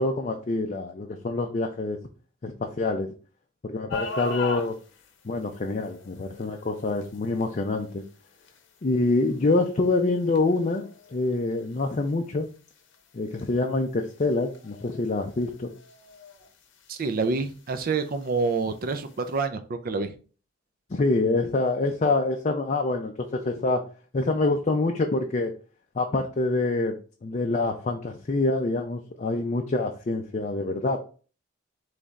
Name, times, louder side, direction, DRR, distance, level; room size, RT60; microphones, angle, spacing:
voice 1, 0.0-2.0 2.4-3.1 3.6-4.8 5.2-8.0 8.8-10.9 11.1-12.5 13.1-15.7 20.9-23.8 24.1-25.5 25.9-31.0, left 2 dB, 35° left, 3 dB, 0.4 m, -26 dB
sound 1, 3.9-19.4, left 2 dB, 60° left, 0.8 m, -44 dB
voice 2, 16.9-20.1, right 4 dB, 45° right, 10 dB, 0.4 m, -27 dB
3.6 x 3.2 x 4.0 m, 0.37 s
head